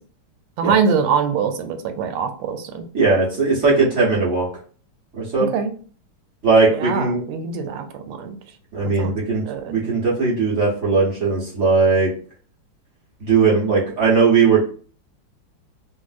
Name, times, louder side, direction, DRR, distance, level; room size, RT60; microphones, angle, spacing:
voice 1, 0.6-2.8 5.5-5.7 6.7-8.4 9.0-9.2 9.4-9.7, right 6 dB, 90° right, 7 dB, 1.5 m, -23 dB
voice 2, 2.9-4.5 5.1-5.5 6.4-7.2 8.7-12.1 13.2-14.6, right 4 dB, 45° right, -5 dB, 1.0 m, -18 dB
3.2 x 2.6 x 2.4 m, 0.42 s
omnidirectional pair, 2.3 m